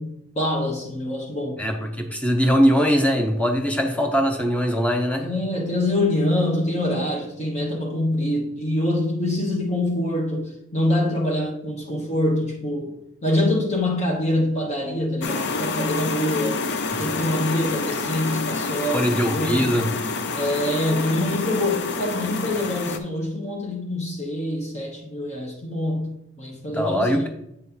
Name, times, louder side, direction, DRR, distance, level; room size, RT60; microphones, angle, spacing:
voice 1, 0.0-1.6 5.1-16.6 17.0-19.7 20.3-27.3, left 1 dB, 35° left, -2 dB, 1.2 m, -25 dB
voice 2, 1.6-5.3 17.1-17.2 18.9-19.9 26.7-27.3, equal, 5° left, 3 dB, 0.8 m, -21 dB
sound 1, 15.2-23.0, left 4 dB, 60° left, 0.6 m, -28 dB
8.3 x 3.2 x 5.5 m, 0.78 s
head